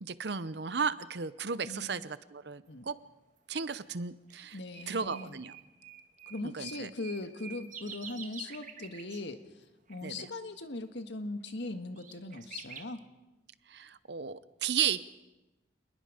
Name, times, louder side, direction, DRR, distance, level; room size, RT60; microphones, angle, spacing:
voice 1, 0.0-2.9 3.5-4.6 4.9-5.6 6.4-6.9 10.0-10.2 13.7-15.1, right 6 dB, 65° right, 15 dB, 0.8 m, -34 dB
sound 1, 3.7-3.8 4.3-4.4 4.7-9.3 9.9-10.0 11.4-11.5 12.0-12.8, right 7 dB, 45° right, 1.7 m, -48 dB
voice 2, 4.5-5.4 6.3-13.0, left 2 dB, 75° left, 7 dB, 1.7 m, -40 dB
28.0 x 20.5 x 5.1 m, 1.0 s
head